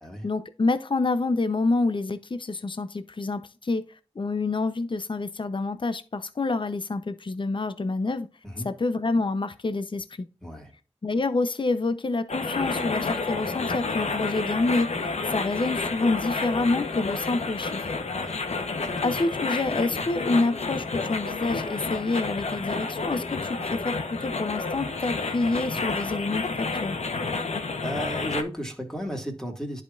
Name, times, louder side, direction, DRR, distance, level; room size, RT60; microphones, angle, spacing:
voice 1, 0.2-3.8 4.2-8.3 8.6-10.3 11.0-14.9 15.2-17.9 19.0-27.0, left 3 dB, 50° left, 0.7 m, -27 dB
voice 2, 10.4-10.7 18.2-18.3 18.8-19.0 27.8-29.8, equal, 5° left, 2.1 m, -34 dB
sound 1, 12.3-28.4, left 3 dB, 80° left, 1.0 m, -30 dB
10.5 x 5.1 x 2.4 m
wide cardioid pair, 55°, 11 cm